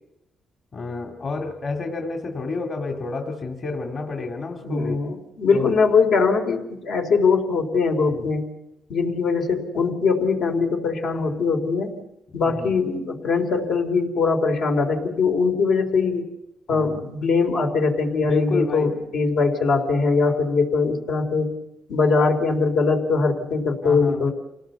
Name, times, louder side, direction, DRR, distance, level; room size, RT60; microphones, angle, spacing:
voice 1, 0.7-5.0 5.5-5.7 8.1-8.3 12.5-12.7 16.7-17.0 18.2-18.9 20.3-20.4 23.8-24.3, left 3 dB, 45° left, 2 dB, 2.6 m, -30 dB
voice 2, 4.6-8.5 8.9-12.0 12.3-16.2 16.7-21.5 21.9-24.3, left 4 dB, 80° left, 3 dB, 4.1 m, -21 dB
28.5 x 18.5 x 7.1 m, 0.91 s
cardioid pair, 115°, 0 cm